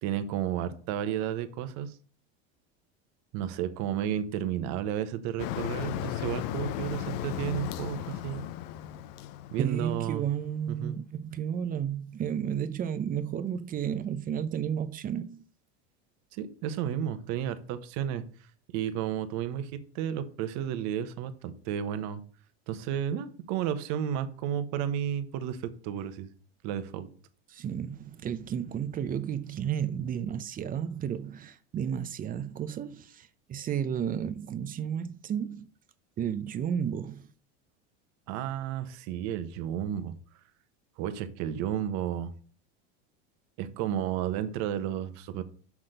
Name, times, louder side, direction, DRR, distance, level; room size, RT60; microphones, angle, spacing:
voice 1, 0.0-2.0 3.3-8.4 9.5-10.3 10.7-11.0 16.3-18.2 18.7-22.2 22.7-26.3 26.6-27.1 38.3-40.2 41.0-42.3 43.6-45.4, right 10 dB, 55° right, 1.0 m, -32 dB
Motor vehicle (road), 5.4-10.3, left 12 dB, 60° left, 0.7 m, -36 dB
voice 2, 9.6-15.4 27.5-35.7 36.2-37.2, right 8 dB, 25° right, 0.6 m, -32 dB
6.0 x 5.9 x 6.6 m
supercardioid pair, 130°, 33 cm